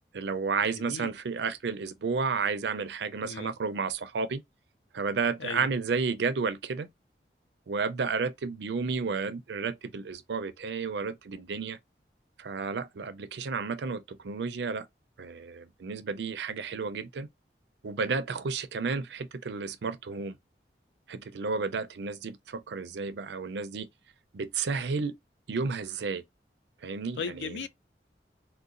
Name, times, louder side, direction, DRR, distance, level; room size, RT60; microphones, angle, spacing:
voice 1, 0.1-4.4 4.9-6.9 7.7-11.8 12.4-14.9 15.2-17.3 17.8-20.4 21.1-23.9 24.3-25.1 25.5-26.2 26.8-27.6, right 5 dB, 80° right, 0.5 m, -32 dB
voice 2, 0.7-1.1 3.2-3.5 5.4-5.7 27.2-27.7, left 5 dB, 90° left, 0.4 m, -36 dB
3.8 x 2.2 x 2.4 m
head